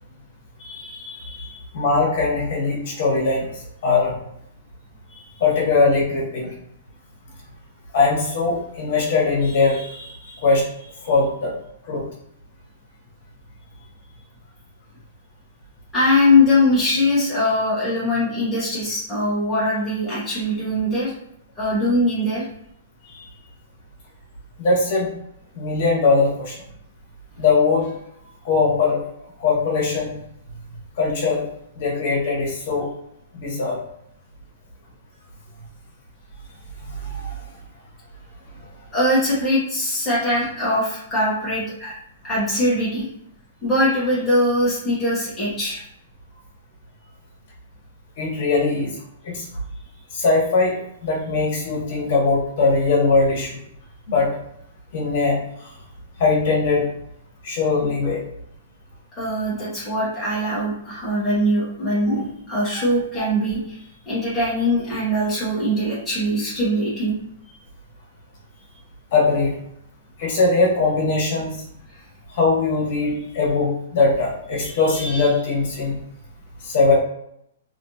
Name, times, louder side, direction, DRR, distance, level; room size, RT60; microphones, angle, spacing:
voice 1, 0.6-1.6 5.1-5.2 15.9-21.1 21.5-22.4 23.1-23.3 38.9-41.9 42.2-43.1 43.6-45.8 59.2-67.1 67.5-67.6 71.9-72.0 74.5-74.7, left 1 dB, 5° left, -10 dB, 1.3 m, -22 dB
voice 2, 1.7-3.5 3.8-4.2 5.4-6.5 7.9-10.7 11.0-11.5 11.9-12.0 24.6-25.1 25.5-26.6 27.4-27.9 28.4-29.0 29.4-30.1 31.0-31.4 31.8-32.9 33.3-33.8 36.9-37.4 48.2-49.0 49.2-49.5 50.1-53.6 54.1-54.3 54.9-55.7 56.2-56.8 57.4-58.2 62.7-62.8 63.1-63.3 69.1-69.5 70.2-71.6 72.3-75.9 76.6-77.0, left 3 dB, 40° left, -4 dB, 1.4 m, -20 dB
3.2 x 2.9 x 2.7 m, 0.74 s
hypercardioid pair, 170°, 0 cm